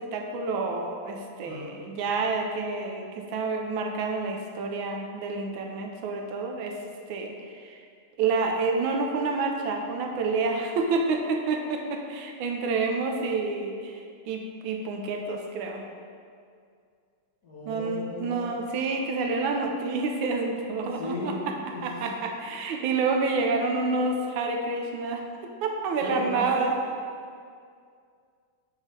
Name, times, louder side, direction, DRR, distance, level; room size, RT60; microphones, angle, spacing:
voice 1, 0.0-6.8 7.1-7.8 8.2-15.8 17.7-21.5 21.8-25.2 25.6-26.7, right 3 dB, 75° right, 2 dB, 1.4 m, -28 dB
voice 2, 1.5-1.8 17.4-18.5 20.9-21.4 21.7-22.2 26.0-26.7, left 2 dB, 55° left, -7 dB, 1.3 m, -36 dB
4.7 x 4.7 x 4.6 m, 2.2 s
omnidirectional pair, 2.3 m